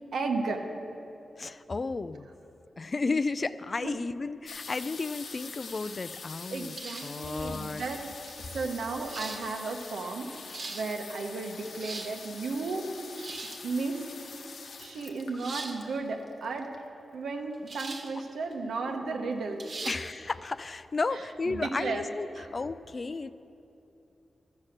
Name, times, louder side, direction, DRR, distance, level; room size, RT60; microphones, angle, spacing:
voice 1, 0.1-0.6 3.8-4.0 6.5-8.0 8.4-10.4 10.7-12.9 13.6-14.1 14.8-16.7 17.1-19.9 21.1-22.0 22.4-22.5, right 3 dB, 90° right, 3 dB, 1.1 m, -34 dB
voice 2, 1.4-2.3 2.8-6.8 7.0-7.8 19.9-22.3 22.5-23.3, left 3 dB, 35° left, 14 dB, 0.3 m, -33 dB
sound 1, 4.5-17.0 17.8-17.9 18.1-18.5 18.8-19.4 19.9-20.0 20.2-20.3, left 4 dB, 75° left, 0.9 m, -45 dB
sound 2, 6.7-7.2 8.3-8.4 9.0-9.4 10.3-10.8 11.6-12.1 13.1-13.6 15.4-15.8 17.7-18.1 18.5-18.6 19.6-20.0, right 3 dB, 65° right, 1.3 m, -40 dB
14.0 x 7.3 x 6.6 m, 2.9 s
wide cardioid pair, 130°, 0 cm